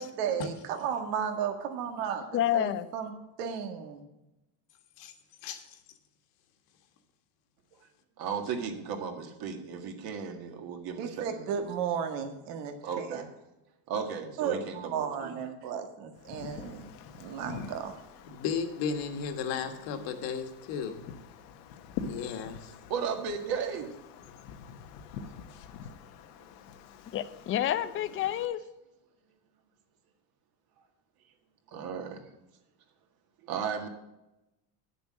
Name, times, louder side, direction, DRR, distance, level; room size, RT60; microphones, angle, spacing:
voice 1, 0.0-4.0 11.0-13.2 14.4-16.9 17.2-18.0, right 7 dB, 90° right, 6 dB, 1.9 m, -34 dB
voice 2, 2.3-2.9 27.1-28.6, left 11 dB, 30° left, 12 dB, 0.5 m, -28 dB
voice 3, 5.4-5.8 18.3-21.0 22.1-22.7 25.5-25.6, left 6 dB, 65° left, 7 dB, 1.7 m, -34 dB
voice 4, 8.2-11.7 12.8-13.3 13.9-15.3 22.9-23.9 31.7-32.3 33.5-33.9, right 6 dB, 50° right, 5 dB, 2.0 m, -35 dB
Wind, 16.1-28.5, left 6 dB, 85° left, 1.2 m, -45 dB
10.5 x 7.0 x 6.3 m, 0.93 s
cardioid pair, 150°, 46 cm